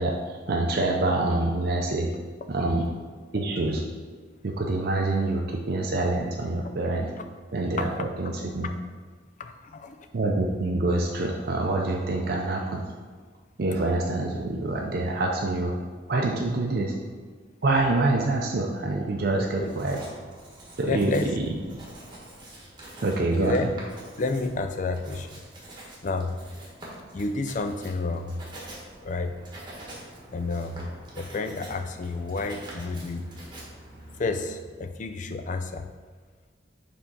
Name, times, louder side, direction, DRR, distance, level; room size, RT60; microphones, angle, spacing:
voice 1, 0.0-2.1 2.5-2.8 3.3-3.8 4.4-7.1 7.5-8.7 10.1-12.8 13.6-15.7 16.1-16.9 17.6-20.0 20.8-21.1 23.0-23.5, right 2 dB, 55° right, 0 dB, 0.5 m, -26 dB
voice 2, 9.4-10.0 19.4-19.8 20.8-21.3 23.2-23.7 24.2-25.4 26.0-26.4 27.1-28.4 29.0-29.3 30.3-30.8 31.2-33.3 34.2-35.9, left 3 dB, 40° left, 8 dB, 0.4 m, -30 dB
Writing, 19.2-34.6, right 1 dB, 25° right, 1.3 m, -46 dB
4.9 x 3.6 x 5.3 m, 1.5 s
head